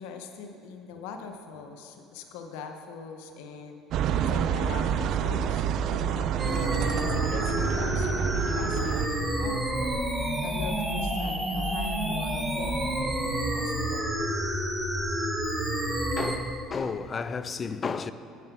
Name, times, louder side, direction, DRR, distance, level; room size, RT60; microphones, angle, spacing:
voice 1, 0.0-3.8 4.2-5.6 5.9-14.1, left 6 dB, 80° left, 0.7 m, -41 dB
sound 1, 3.9-9.1, right 9 dB, 60° right, 0.4 m, -28 dB
sound 2, 6.4-16.4, right 1 dB, 15° right, 1.4 m, -29 dB
voice 2, 16.2-18.1, left 5 dB, 35° left, 0.4 m, -32 dB
9.4 x 7.7 x 6.0 m
supercardioid pair, 80°, 0 cm